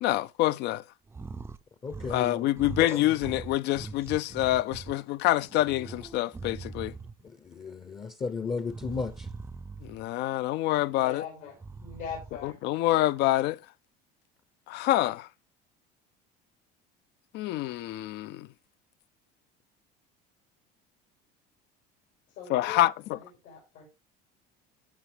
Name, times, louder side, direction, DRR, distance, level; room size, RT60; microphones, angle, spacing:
voice 1, 0.0-0.8 2.1-6.9 9.8-11.2 12.4-13.6 14.7-15.3 17.3-18.5 22.5-23.2, left 15 dB, 60° left, 0.4 m, -26 dB
sound 1, 1.1-1.6 1.9-2.3 2.6-4.9 5.4-7.3 8.7-10.1 11.5-12.6, right 4 dB, 10° right, 0.5 m, -42 dB
voice 2, 1.8-2.4 2.8-3.0 7.5-9.3, left 4 dB, 25° left, 0.7 m, -34 dB
voice 3, 10.7-11.5 11.8-12.6 22.3-22.8 23.1-23.9, left 7 dB, 80° left, 6.3 m, -42 dB
15.0 x 5.8 x 3.3 m
supercardioid pair, 115°, 20 cm